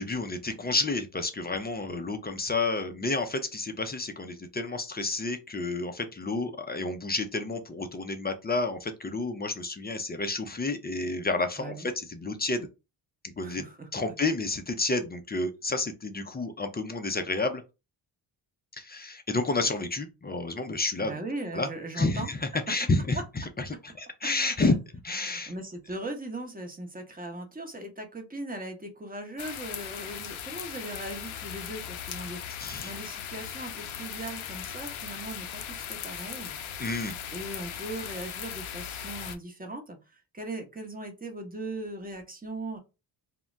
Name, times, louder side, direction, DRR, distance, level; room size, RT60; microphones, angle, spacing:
voice 1, 0.0-12.7 13.4-13.6 13.9-17.6 18.8-21.1 21.5-21.7 21.9-22.4 22.7-23.2 24.0-24.8 25.0-25.5 32.6-32.9 36.8-37.1, left 3 dB, 20° left, 0.4 m, -30 dB
voice 2, 11.6-11.9 13.4-14.4 21.0-22.3 24.6-24.7 25.5-36.5 37.3-42.8, right 2 dB, 15° right, 0.9 m, -39 dB
sound 1, 29.4-39.4, left 9 dB, 70° left, 0.6 m, -38 dB
2.1 x 2.1 x 3.7 m
supercardioid pair, 55°, 50 cm